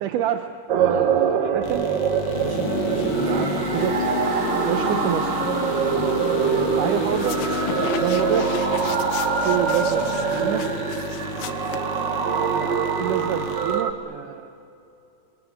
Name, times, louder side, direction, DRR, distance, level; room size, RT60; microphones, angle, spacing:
voice 1, 0.0-1.9 2.7-3.9 4.7-5.4 6.0-7.4 8.0-8.5 9.2-10.6 12.4-14.5, right 11 dB, 75° right, 6 dB, 2.4 m, -28 dB
sound 1, 0.7-13.9, right 7 dB, 60° right, 1.1 m, -24 dB
voice 2, 0.9-1.4 2.2-4.5 4.8-4.9 9.6-11.4, left 1 dB, 30° right, -2 dB, 7.4 m, -41 dB
sound 2, 1.6-13.8, left 6 dB, 85° left, 3.6 m, -31 dB
sound 3, 7.0-12.4, left 9 dB, 65° left, 1.5 m, -36 dB
27.0 x 22.5 x 9.8 m, 2.8 s
omnidirectional pair, 3.8 m